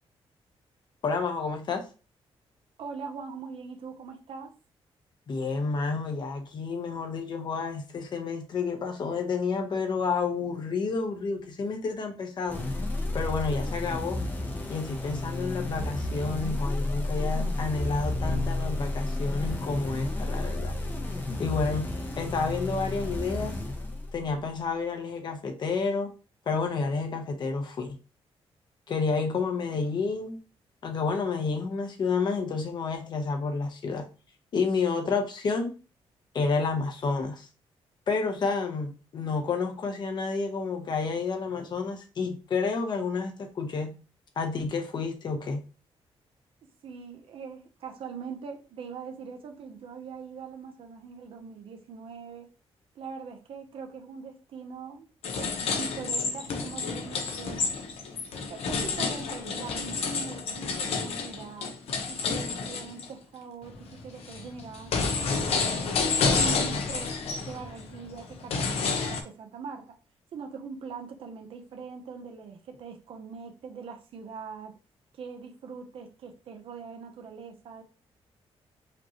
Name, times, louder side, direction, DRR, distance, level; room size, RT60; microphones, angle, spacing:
voice 1, 1.0-1.8 5.3-12.7 13.1-14.2 14.7-20.7 21.4-23.6 24.1-26.1 26.5-28.0 28.9-30.4 30.8-34.1 34.5-35.7 36.3-37.4 38.1-44.0 44.4-45.6, left 4 dB, 45° left, 4 dB, 0.9 m, -30 dB
voice 2, 2.8-4.5 46.8-52.5 53.0-55.1 55.4-57.7 58.4-61.7 62.1-65.0 65.4-66.1 66.3-67.1 67.4-70.0 70.3-74.7 75.1-77.8, right 5 dB, 60° right, 4 dB, 0.8 m, -42 dB
sound 1, 12.5-24.4, left 2 dB, 20° left, 0.7 m, -31 dB
sound 2, 55.2-63.1 63.6-69.2, left 4 dB, 75° left, 0.9 m, -29 dB
5.1 x 3.0 x 2.9 m, 0.33 s
wide cardioid pair, 170°, 10 cm